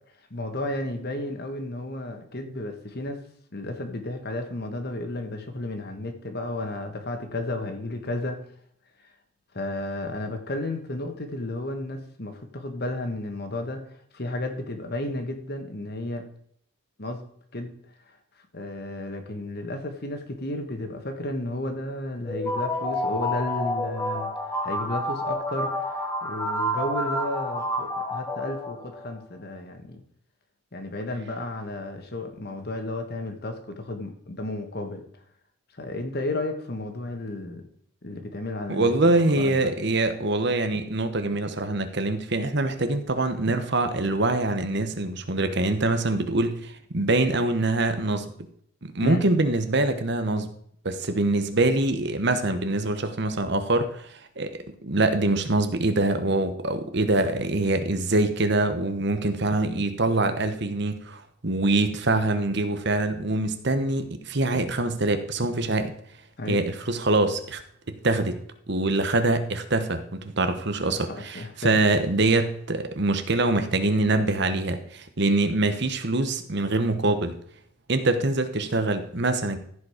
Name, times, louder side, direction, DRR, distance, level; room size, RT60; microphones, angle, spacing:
voice 1, 0.3-3.2 3.5-8.4 9.5-13.8 14.1-16.2 17.0-17.8 18.5-30.0 30.7-35.1 35.8-37.7 38.0-39.7 49.0-49.2 66.4-66.6 70.9-71.8, left 1 dB, 50° left, 6 dB, 1.4 m, -33 dB
sound 1, 22.3-29.1, left 1 dB, 15° left, 1.3 m, -29 dB
voice 2, 38.7-48.3 48.8-50.5 50.8-54.5 54.8-65.9 66.5-67.6 67.9-68.4 68.7-77.3 77.9-79.6, right 2 dB, 55° right, 8 dB, 1.1 m, -24 dB
14.5 x 5.2 x 5.0 m, 0.66 s
head